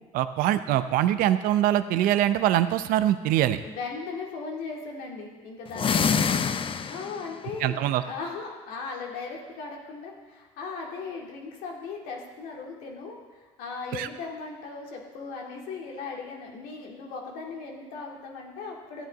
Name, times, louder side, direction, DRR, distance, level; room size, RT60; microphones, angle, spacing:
voice 1, 0.1-3.6 7.6-8.0 13.9-14.1, right 12 dB, 70° right, 12 dB, 0.6 m, -23 dB
voice 2, 3.6-6.4 6.9-19.1, left 4 dB, 75° left, 0 dB, 2.2 m, -38 dB
sound 1, 5.7-7.3, left 6 dB, 35° left, 0.6 m, -25 dB
13.5 x 9.1 x 4.0 m, 1.3 s
supercardioid pair, 75°, 15 cm